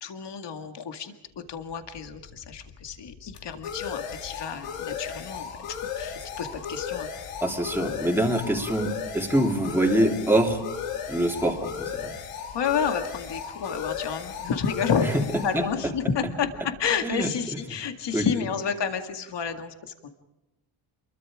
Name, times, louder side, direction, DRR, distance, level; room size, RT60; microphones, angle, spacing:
voice 1, 0.0-7.1 9.6-9.7 12.5-15.2 15.4-20.1, left 6 dB, 55° left, 7 dB, 2.2 m, -30 dB
sound 1, 1.7-17.1, left 7 dB, 85° left, 3.0 m, -36 dB
voice 2, 7.4-10.6 11.1-12.1 15.5-15.6 17.0-17.3 18.1-18.2, right 1 dB, 5° right, 1 dB, 3.0 m, -24 dB
28.5 x 22.5 x 5.0 m, 0.99 s
cardioid pair, 135°, 50 cm